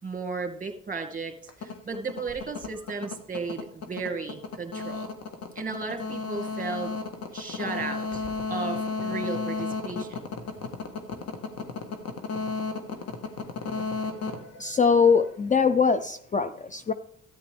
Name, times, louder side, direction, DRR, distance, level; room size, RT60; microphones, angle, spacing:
voice 1, 0.0-5.1 5.6-6.9 7.3-10.2, right 4 dB, 25° right, 5 dB, 2.2 m, -35 dB
sound 1, 1.5-15.3, left 4 dB, 60° left, 1.6 m, -33 dB
voice 2, 14.6-16.9, left 5 dB, 25° left, 10 dB, 0.5 m, -22 dB
13.5 x 9.9 x 3.5 m, 0.65 s
cardioid pair, 90°, 30 cm